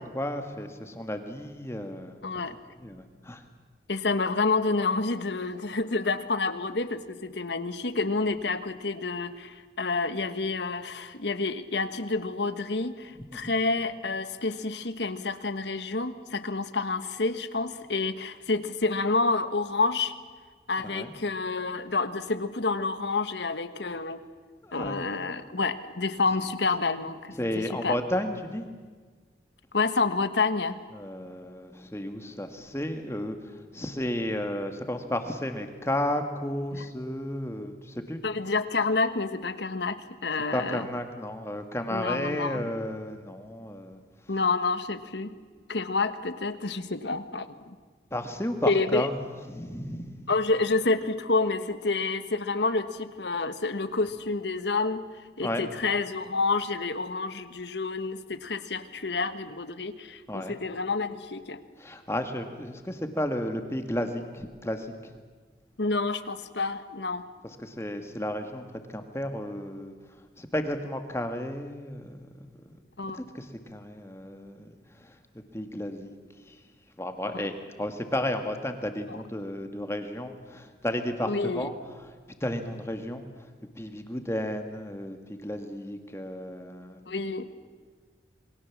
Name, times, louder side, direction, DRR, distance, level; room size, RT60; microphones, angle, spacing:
voice 1, 0.0-2.2 2.8-3.4 13.3-13.5 20.8-21.1 24.6-25.4 27.4-28.7 30.9-38.2 40.5-44.0 48.1-49.2 49.5-50.3 55.4-55.7 60.3-60.6 61.8-65.2 67.4-70.0 70.4-72.8 73.1-76.1 76.5-76.6 77.0-81.7 82.0-82.1 82.4-83.5 83.8-87.0, left 1 dB, 15° left, 6 dB, 1.8 m, -33 dB
voice 2, 2.2-2.6 3.9-20.1 20.7-24.2 24.7-28.0 29.7-30.8 36.7-36.8 38.2-40.8 41.9-42.6 44.3-45.3 45.7-47.7 48.6-49.1 50.3-55.0 55.4-61.6 65.8-67.3 73.0-73.2 79.1-79.2 81.3-81.7 87.1-87.5, left 3 dB, 75° left, 11 dB, 1.3 m, -29 dB
27.5 x 22.0 x 7.3 m, 1.5 s
head